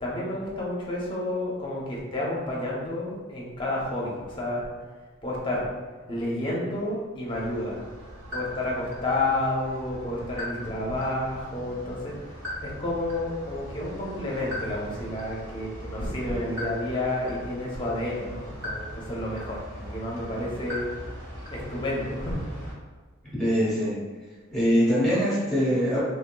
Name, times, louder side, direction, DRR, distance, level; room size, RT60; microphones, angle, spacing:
voice 1, 0.0-4.7 5.2-5.7 6.1-7.8 8.3-12.1 12.6-20.9 21.5-22.4, left 1 dB, 25° left, -4 dB, 0.6 m, -30 dB
sound 1, 7.3-22.7, equal, 60° right, 1.1 m, -39 dB
voice 2, 23.4-24.0 24.5-26.0, equal, ahead, -9 dB, 1.0 m, -23 dB
3.3 x 2.7 x 2.2 m, 1.4 s
head